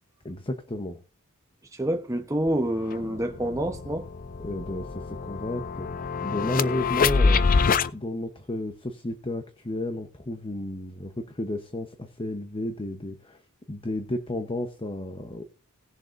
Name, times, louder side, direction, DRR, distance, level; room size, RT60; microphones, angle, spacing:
voice 1, 0.2-1.0 4.4-7.5 7.9-13.4 13.7-15.4, left 1 dB, 25° left, 1.0 m, -32 dB
voice 2, 1.7-4.1, right 1 dB, 15° right, 1.0 m, -27 dB
sound 1, 2.5-2.6 2.9-7.9, left 4 dB, 40° left, 0.5 m, -26 dB
19.0 x 7.1 x 2.6 m
head